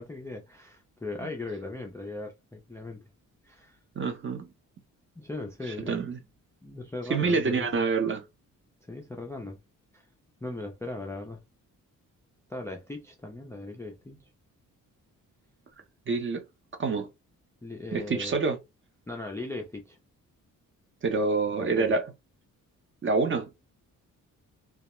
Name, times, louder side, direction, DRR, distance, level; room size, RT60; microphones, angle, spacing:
voice 1, 0.0-3.0 3.4-3.8 5.2-6.1 6.6-7.7 8.8-9.6 9.9-10.1 10.4-11.4 12.5-14.3 17.6-18.4 19.1-20.0 21.7-21.9, left 2 dB, 10° left, 0.3 m, -38 dB
voice 2, 3.9-4.5 5.7-6.2 7.1-8.2 16.1-16.4 16.8-17.1 17.9-18.6 21.0-22.1 23.0-23.5, right 4 dB, 35° right, 0.6 m, -27 dB
2.3 x 2.0 x 2.9 m
wide cardioid pair, 140°, 33 cm